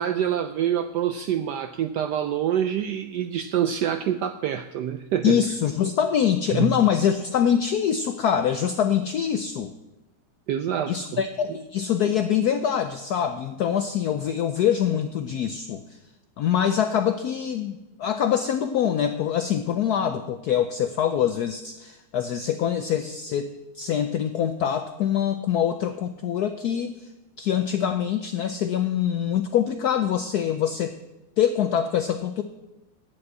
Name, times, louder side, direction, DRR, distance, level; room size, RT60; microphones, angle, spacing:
voice 1, 0.0-5.4 6.5-6.8 10.5-11.2 11.5-11.6, right 10 dB, 80° right, 9 dB, 0.9 m, -26 dB
voice 2, 5.2-9.7 10.9-15.8 16.4-26.9 27.4-30.9 31.4-32.4, left 9 dB, 80° left, 8 dB, 0.8 m, -24 dB
8.9 x 7.8 x 8.2 m, 0.99 s
omnidirectional pair, 2.3 m